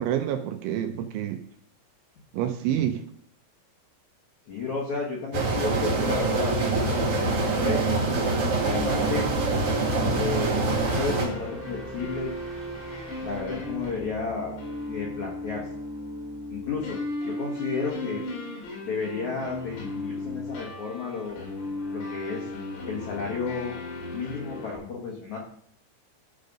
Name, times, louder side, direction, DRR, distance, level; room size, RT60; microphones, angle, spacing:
voice 1, 0.0-1.4 2.3-3.0, right 10 dB, 80° right, 6 dB, 2.8 m, -28 dB
voice 2, 4.5-7.0 7.3-7.9 8.6-9.3 10.2-12.3 13.2-14.6 14.9-15.6 16.5-17.0 17.2-18.2 18.8-21.5 21.9-22.5 22.8-23.7 24.1-25.4, left 5 dB, 70° left, -2 dB, 1.7 m, -32 dB
sound 1, 5.3-11.3, right 3 dB, 60° right, 1.4 m, -25 dB
sound 2, 7.6-15.3, right 1 dB, 40° right, 0.7 m, -42 dB
sound 3, 7.8-24.8, left 2 dB, 90° left, 5.3 m, -36 dB
13.0 x 5.2 x 5.3 m, 0.62 s
omnidirectional pair, 5.9 m